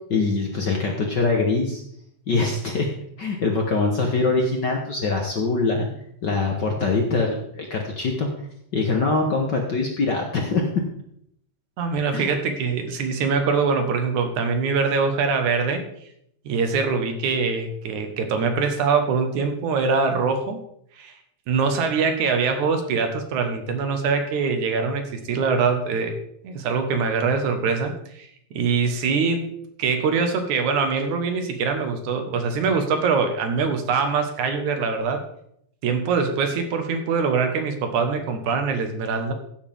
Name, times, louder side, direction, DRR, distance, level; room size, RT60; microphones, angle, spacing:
voice 1, 0.1-1.8 2.3-2.9 3.2-5.9 6.2-8.3 8.7-10.7 12.1-12.3, left 3 dB, 50° left, 1 dB, 1.3 m, -23 dB
voice 2, 11.8-15.8 16.5-20.6 21.0-21.1 21.5-26.1 26.4-28.3 28.5-29.5 29.8-35.2 35.8-39.3, right 5 dB, 80° right, 6 dB, 2.8 m, -23 dB
15.5 x 8.2 x 3.6 m, 0.72 s
omnidirectional pair, 3.4 m